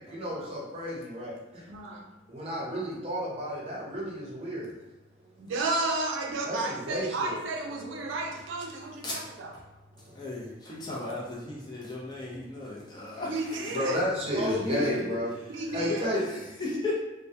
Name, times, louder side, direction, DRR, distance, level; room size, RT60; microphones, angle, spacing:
voice 1, 0.1-1.3 2.3-4.7 6.4-7.4 7.9-8.0 13.7-15.3 15.7-16.2, equal, 30° right, -5 dB, 0.6 m, -31 dB
voice 2, 1.7-2.1 5.4-9.5 13.3-14.0 15.5-16.2, right 2 dB, 85° right, 1 dB, 0.4 m, -33 dB
voice 3, 9.0-9.6 10.1-14.0 14.7-15.0 15.6-17.0, left 3 dB, 20° left, -5 dB, 0.4 m, -35 dB
2.2 x 2.1 x 2.7 m, 1.1 s
head